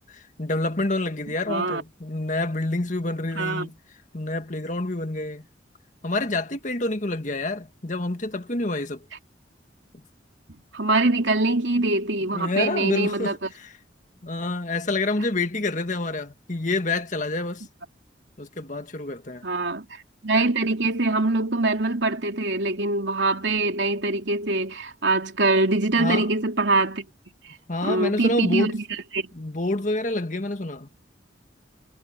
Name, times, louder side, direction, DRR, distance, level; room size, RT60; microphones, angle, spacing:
voice 1, 0.1-3.8 4.1-5.5 6.0-9.0 12.3-13.7 14.2-17.7 18.4-19.4 26.0-26.3 27.7-28.7 29.3-30.9, left 2 dB, 45° left, 1.8 m, -27 dB
voice 2, 1.5-1.8 3.3-3.7 10.7-13.4 19.4-27.1 27.4-27.6 27.8-28.8 29.1-29.3, right 2 dB, 85° right, 2.8 m, -23 dB
head